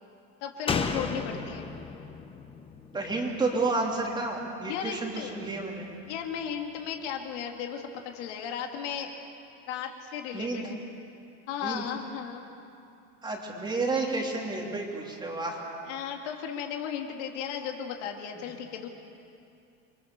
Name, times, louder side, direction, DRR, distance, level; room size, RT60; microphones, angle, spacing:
voice 1, 0.4-1.7 4.7-5.4 6.1-9.1 9.7-10.8 11.5-12.5 15.9-18.9, left 8 dB, 70° left, 2 dB, 3.0 m, -35 dB
Slam, 0.7-4.2 4.5-4.6, left 5 dB, 15° left, 1.0 m, -34 dB
voice 2, 2.9-5.9 10.3-10.6 11.6-11.8 13.2-15.6, right 3 dB, 10° right, -1 dB, 3.1 m, -30 dB
30.0 x 23.5 x 7.0 m, 2.6 s
cardioid pair, 165°, 36 cm